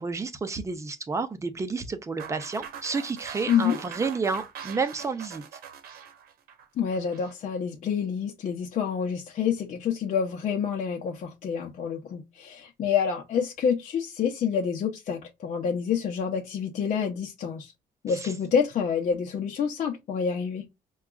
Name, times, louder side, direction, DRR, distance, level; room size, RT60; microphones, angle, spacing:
voice 1, 0.0-5.6 18.2-18.3, right 4 dB, 20° right, 0.6 m, -30 dB
sound 1, 2.2-7.3, right 7 dB, 90° right, 0.8 m, -42 dB
voice 2, 3.5-3.8 6.8-17.7 18.0-20.7, left 7 dB, 55° left, 0.7 m, -28 dB
5.8 x 2.3 x 2.2 m
cardioid pair, 135°, 15 cm